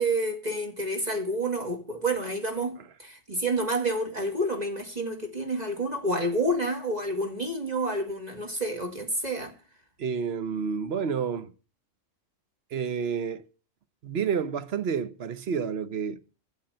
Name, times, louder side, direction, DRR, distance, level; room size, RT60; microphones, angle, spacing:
voice 1, 0.0-9.5, right 1 dB, 30° right, 2.0 m, -29 dB
voice 2, 10.0-11.5 12.7-13.4 14.0-16.3, right 6 dB, 55° right, 1.0 m, -29 dB
13.0 x 7.5 x 7.7 m
omnidirectional pair, 1.3 m